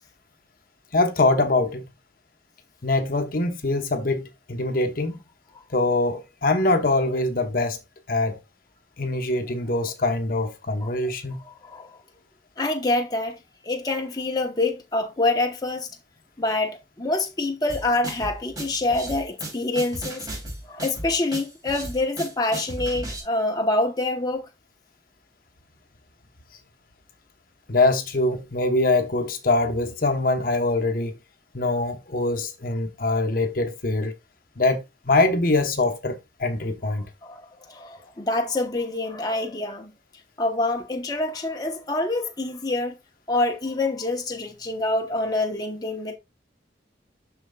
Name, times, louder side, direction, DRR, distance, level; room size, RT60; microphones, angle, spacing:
voice 1, 0.9-1.8 2.8-5.2 5.7-7.8 8.1-8.4 9.0-11.4 27.7-31.2 31.5-34.1 34.6-37.0, left 2 dB, 50° left, 1.0 m, -23 dB
voice 2, 11.4-12.0 12.6-13.4 13.6-15.9 16.4-20.3 20.7-24.4 37.2-39.9 40.4-42.9 43.3-46.2, left 2 dB, 20° left, 1.0 m, -26 dB
sound 1, 17.7-23.2, right 1 dB, 20° right, 3.4 m, -35 dB
12.0 x 4.5 x 2.3 m
head